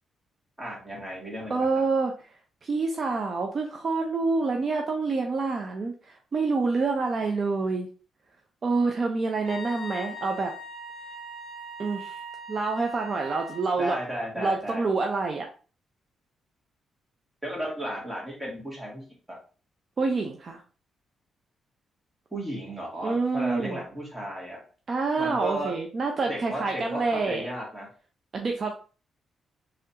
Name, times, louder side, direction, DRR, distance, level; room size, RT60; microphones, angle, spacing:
voice 1, 0.6-1.7 13.8-14.8 17.4-19.4 22.3-24.6 25.2-25.7 26.3-27.9, right 1 dB, 10° right, -3 dB, 2.1 m, -34 dB
voice 2, 1.5-7.9 8.6-10.5 11.8-12.2 12.5-14.0 14.4-15.5 20.0-20.6 23.0-23.8 24.9-27.5 28.3-28.7, right 4 dB, 45° right, 2 dB, 0.5 m, -27 dB
Wind instrument woodwind instrument, 9.4-13.7, equal, 70° right, 2.1 m, -40 dB
3.8 x 3.2 x 2.8 m, 0.38 s
cardioid pair, 100°, 0 cm